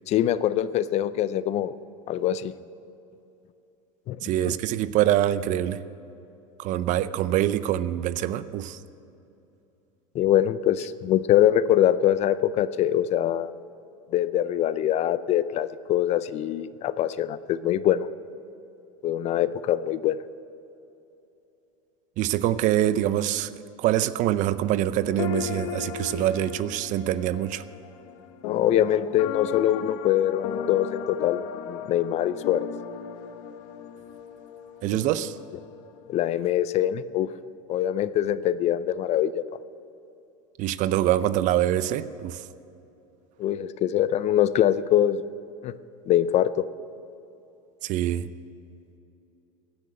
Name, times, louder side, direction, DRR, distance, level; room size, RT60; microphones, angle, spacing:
voice 1, 0.1-1.7 2.1-2.5 4.1-4.2 4.5-4.6 10.1-13.5 14.1-18.1 19.0-20.2 28.5-32.7 34.9-35.0 36.1-37.3 37.7-39.4 43.4-45.2 45.6-45.7 46.1-46.7, left 11 dB, 40° left, 16 dB, 0.5 m, -23 dB
voice 2, 4.2-5.8 6.6-8.8 22.2-23.5 23.8-27.6 34.8-35.3 40.6-42.4 47.8-48.3, right 12 dB, 50° right, 15 dB, 0.6 m, -25 dB
sound 1, 25.1-36.2, left 8 dB, 70° left, 1.0 m, -36 dB
16.0 x 10.0 x 7.6 m, 2.8 s
supercardioid pair, 120°, 17 cm